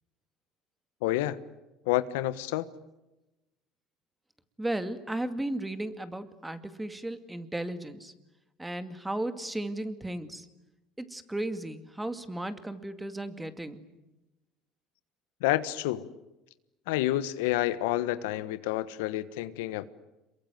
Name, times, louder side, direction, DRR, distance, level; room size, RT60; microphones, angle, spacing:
voice 1, 1.0-1.4 1.8-2.7 15.4-16.1 16.9-19.9, left 15 dB, 85° left, 14 dB, 1.3 m, -29 dB
voice 2, 4.6-8.1 8.6-10.5 11.0-13.8, right 1 dB, 10° right, 10 dB, 2.2 m, -35 dB
27.5 x 23.0 x 9.4 m, 0.98 s
supercardioid pair, 110°, 0 cm